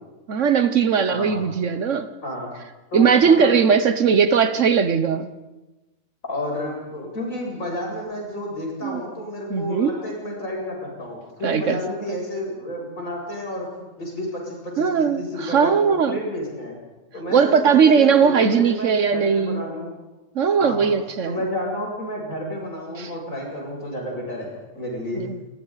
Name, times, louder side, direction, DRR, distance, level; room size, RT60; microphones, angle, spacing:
voice 1, 0.3-2.1 2.9-5.3 8.8-9.0 9.5-10.0 11.4-11.8 12.1-12.2 14.8-16.2 17.3-19.6 20.3-21.5 23.0-23.1 25.1-25.4, right 6 dB, 60° right, 1.2 m, -19 dB
voice 2, 1.1-1.4 2.2-2.5 2.9-3.5 6.2-13.7 14.0-16.8 17.1-19.9 20.6-20.9 21.2-25.2, left 1 dB, 65° left, 8.2 m, -31 dB
29.5 x 23.0 x 4.1 m
omnidirectional pair, 1.5 m